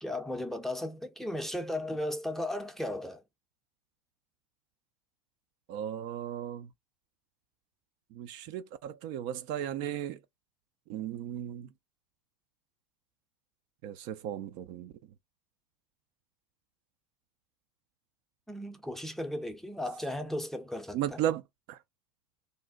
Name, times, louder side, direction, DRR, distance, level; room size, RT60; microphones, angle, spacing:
voice 1, 0.0-3.2 18.5-21.2, left 1 dB, ahead, 0.5 m, -35 dB
voice 2, 5.7-6.7 8.1-10.2 10.9-11.7 13.8-14.9 20.9-21.4 21.7-21.8, right 11 dB, 50° right, 0.4 m, -35 dB
2.6 x 2.1 x 3.5 m
hypercardioid pair, 95°, 18 cm